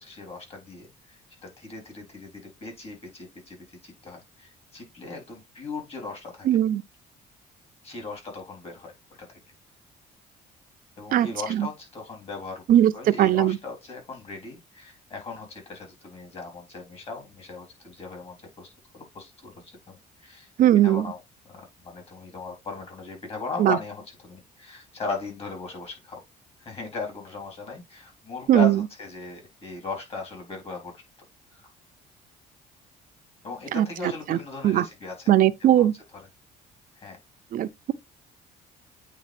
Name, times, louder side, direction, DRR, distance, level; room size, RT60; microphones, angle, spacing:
voice 1, 0.0-3.6 3.8-6.5 7.8-8.9 9.2-9.4 11.0-20.5 20.8-21.2 21.5-26.2 26.6-31.0 31.5-31.7 33.4-35.3 35.6-35.9 37.0-37.2, left 3 dB, 35° left, 3.8 m, -38 dB
voice 2, 6.4-6.8 11.1-11.7 12.7-13.6 20.6-21.1 23.6-23.8 28.5-28.8 33.7-33.9 34.3-34.4 34.6-34.9 35.3-35.9 37.5-37.9, right 12 dB, 55° right, 0.6 m, -19 dB
8.6 x 3.5 x 3.4 m
cardioid pair, 110°, 17 cm